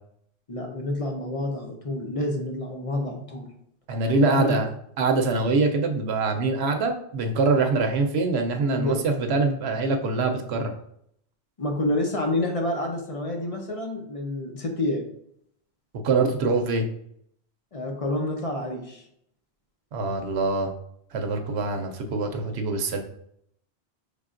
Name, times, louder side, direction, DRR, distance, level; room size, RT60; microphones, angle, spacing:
voice 1, 0.5-3.5 4.2-4.6 8.7-9.0 11.6-15.1 17.7-19.0, left 1 dB, 40° left, 2 dB, 0.6 m, -28 dB
voice 2, 3.9-4.7 5.0-10.7 16.0-16.9 19.9-20.7 21.1-23.0, right 3 dB, 75° right, 5 dB, 0.9 m, -24 dB
5.5 x 3.3 x 2.5 m, 0.71 s
omnidirectional pair, 1.1 m